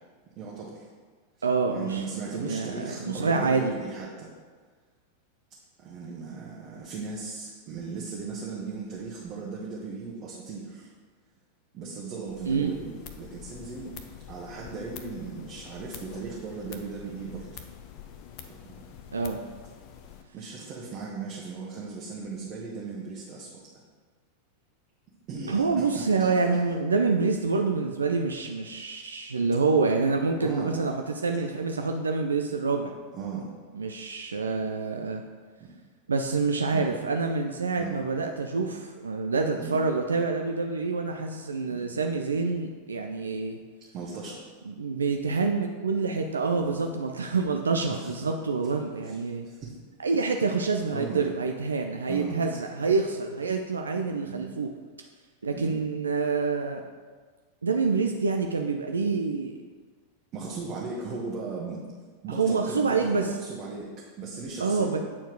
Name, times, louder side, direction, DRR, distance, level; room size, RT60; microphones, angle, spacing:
voice 1, 0.4-0.9 1.7-4.3 5.8-10.9 11.7-13.9 14.3-17.6 18.4-18.9 20.3-23.5 25.3-26.3 30.4-30.8 33.1-33.5 35.6-35.7 36.7-36.9 37.8-38.0 39.6-39.8 41.7-41.9 43.9-44.4 46.5-46.9 47.9-48.2 49.0-49.7 50.9-51.3 52.1-52.5 54.2-54.5 55.5-55.8 60.3-61.8 62.2-65.0, right 4 dB, 35° right, -5 dB, 1.2 m, -37 dB
voice 2, 1.4-2.0 2.3-3.7 12.5-12.7 19.1-19.4 25.5-30.9 31.2-32.9 33.7-35.2 36.1-43.6 44.7-49.4 50.0-54.7 55.4-56.8 57.6-59.6 62.3-63.3 64.6-65.0, right 4 dB, 75° right, 3 dB, 0.4 m, -27 dB
sound 1, 12.3-20.2, left 9 dB, 45° left, 0.7 m, -46 dB
8.4 x 4.5 x 4.6 m, 1.5 s
figure-of-eight pair, 90°, 0 cm